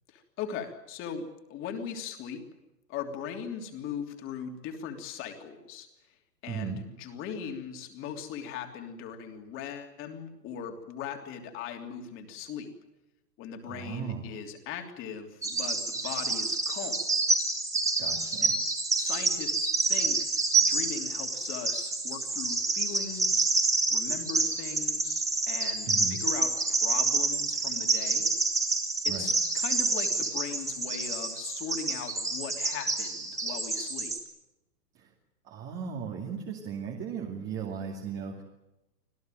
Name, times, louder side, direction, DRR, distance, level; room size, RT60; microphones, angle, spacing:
voice 1, 0.1-2.4 2.9-5.9 6.4-12.7 13.4-17.0 18.4-18.6 19.0-23.5 23.9-28.3 29.0-34.1, left 7 dB, 25° left, 5 dB, 3.2 m, -39 dB
voice 2, 6.5-6.8 13.7-14.2 18.0-18.5 25.8-26.2 29.1-29.3 35.0-35.1 35.4-38.4, right 7 dB, 25° right, 1 dB, 2.5 m, -36 dB
Bird vocalization bird call bird song, 15.4-34.2, right 3 dB, 5° right, 2.6 m, -28 dB
26.5 x 16.5 x 9.2 m, 0.94 s
hypercardioid pair, 155°, 49 cm